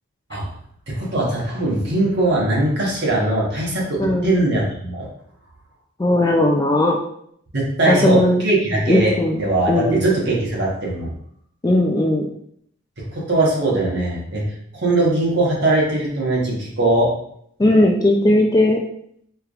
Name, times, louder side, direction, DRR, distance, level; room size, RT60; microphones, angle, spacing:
voice 1, 0.9-5.1 7.5-11.1 13.1-14.4 14.8-17.1, right 2 dB, 50° right, -4 dB, 1.2 m, -20 dB
voice 2, 4.0-4.4 6.0-7.0 7.9-8.4 8.9-9.4 9.7-10.0 11.6-12.3 17.6-18.8, left 1 dB, 15° left, 1 dB, 0.3 m, -17 dB
4.5 x 3.2 x 2.4 m, 0.68 s
head